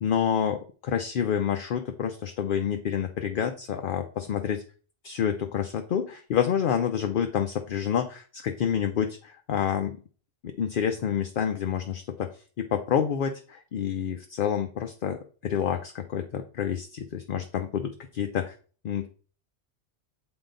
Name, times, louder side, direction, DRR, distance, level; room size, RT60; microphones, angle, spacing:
voice 1, 0.0-4.6 5.0-10.0 10.4-12.3 12.6-18.5 18.8-19.1, left 8 dB, 60° left, 6 dB, 0.7 m, -28 dB
7.9 x 3.8 x 3.8 m, 0.40 s
omnidirectional pair, 1.1 m